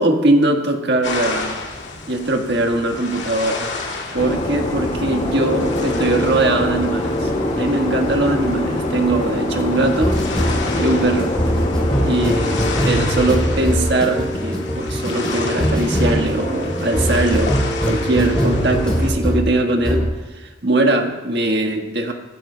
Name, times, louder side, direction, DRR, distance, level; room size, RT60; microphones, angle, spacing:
voice 1, 0.0-1.6 2.1-3.7 4.1-7.3 7.6-10.2 10.5-11.4 12.1-17.6 17.8-20.0 20.3-22.1, right 2 dB, 60° right, 3 dB, 1.5 m, -20 dB
sound 1, 1.0-19.1, left 3 dB, 70° left, 2.2 m, -31 dB
sound 2, 4.2-12.8, left 2 dB, 40° left, 1.9 m, -24 dB
sound 3, 5.2-19.5 19.8-20.1, equal, 5° left, 3.6 m, -23 dB
25.0 x 10.5 x 2.2 m, 1.3 s
head